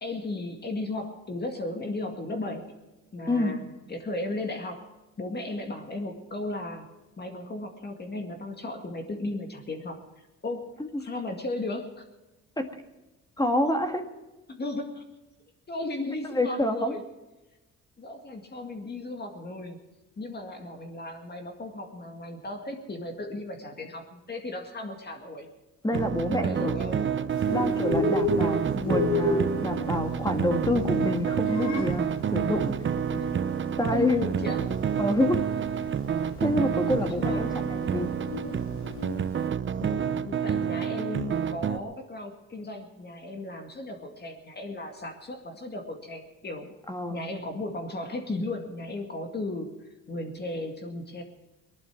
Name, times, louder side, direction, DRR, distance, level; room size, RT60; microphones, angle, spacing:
voice 1, 0.0-2.8 3.1-4.9 5.2-10.0 10.4-12.0 14.5-15.0 15.7-17.0 18.0-19.8 20.2-25.5 26.3-27.3 33.1-33.3 33.9-34.8 36.9-37.8 39.8-46.7 47.1-51.2, left 2 dB, 35° left, 3 dB, 2.1 m, -35 dB
voice 2, 13.4-14.1 16.3-17.0 25.8-26.7 27.5-32.8 33.8-34.2 35.0-35.5 36.4-38.1 46.9-47.2, left 1 dB, 15° left, 6 dB, 1.8 m, -27 dB
sound 1, 25.9-41.8, right 8 dB, 40° right, 0.7 m, -29 dB
Bird, 27.3-39.4, left 2 dB, 70° left, 3.2 m, -32 dB
19.5 x 11.5 x 6.0 m, 1.1 s
cardioid pair, 90°, 30 cm